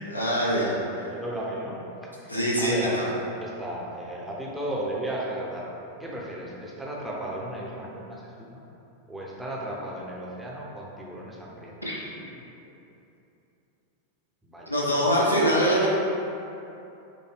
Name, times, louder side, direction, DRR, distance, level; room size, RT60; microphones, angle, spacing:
voice 1, 0.1-0.7 2.3-2.7 11.8-12.0 14.7-15.9, equal, 85° left, -5 dB, 0.7 m, -23 dB
voice 2, 0.7-5.7 6.0-8.7 9.1-11.8 14.4-14.7, right 1 dB, 10° right, -4 dB, 0.7 m, -35 dB
5.0 x 2.2 x 3.3 m, 2.8 s
figure-of-eight pair, 90°, 0 cm